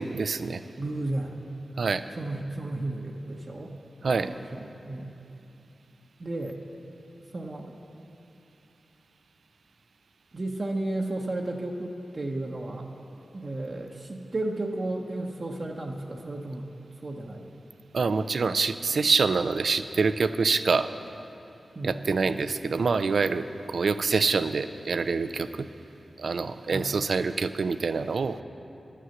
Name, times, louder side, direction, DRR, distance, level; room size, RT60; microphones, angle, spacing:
voice 1, 0.0-0.6 1.8-2.1 4.0-4.3 17.9-20.9 21.8-25.7 26.2-28.4, right 4 dB, 75° right, 12 dB, 0.4 m, -26 dB
voice 2, 0.8-1.4 2.2-3.7 4.2-5.1 6.2-6.6 7.3-7.8 10.3-12.9 13.3-16.7 17.0-17.5 21.7-22.0 26.7-26.9, right 2 dB, 50° right, -1 dB, 0.8 m, -33 dB
11.0 x 6.6 x 7.8 m, 2.8 s
cardioid pair, 40°, 0 cm